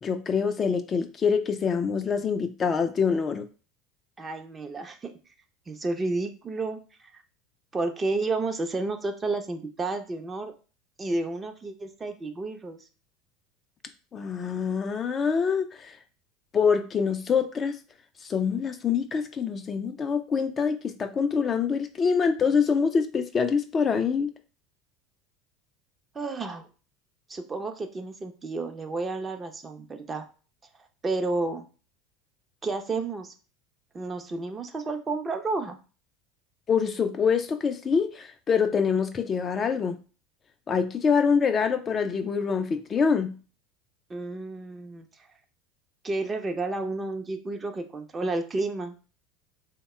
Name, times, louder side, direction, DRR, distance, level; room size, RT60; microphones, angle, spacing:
voice 1, 0.0-3.5 14.1-15.9 16.5-17.8 18.2-24.3 36.7-40.0 40.7-43.3, left 6 dB, 30° left, 7 dB, 0.4 m, -25 dB
voice 2, 4.2-5.2 5.7-6.8 7.1-7.2 7.7-10.5 11.0-12.8 26.1-26.7 27.3-30.3 31.0-31.7 32.6-33.3 33.9-35.8 44.1-45.1 46.0-48.9, right 3 dB, 25° right, 6 dB, 0.6 m, -31 dB
3.4 x 2.1 x 4.1 m, 0.36 s
hypercardioid pair, 75°, 0 cm